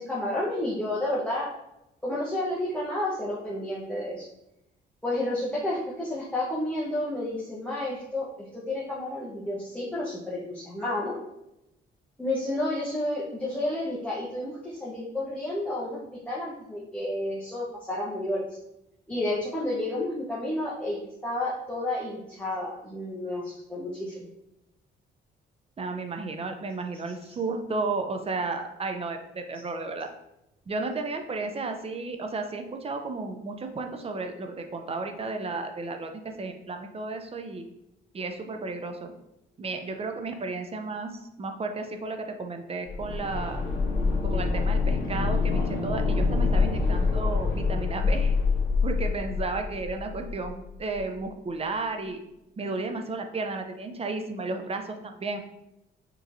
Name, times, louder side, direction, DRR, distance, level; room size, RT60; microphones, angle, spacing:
voice 1, 0.0-1.5 2.0-4.3 5.0-11.1 12.2-16.0 16.3-18.5 19.1-24.3, left 1 dB, 5° left, -8 dB, 1.0 m, -31 dB
voice 2, 25.8-30.1 30.7-37.6 38.1-39.1 39.6-43.6 44.2-48.4 48.8-52.2 52.6-55.4, right 3 dB, 30° right, 5 dB, 0.6 m, -33 dB
sound 1, 42.8-50.7 50.9-51.0, left 4 dB, 45° left, 1.2 m, -26 dB
5.0 x 3.1 x 2.6 m, 0.88 s
cardioid pair, 90°, 20 cm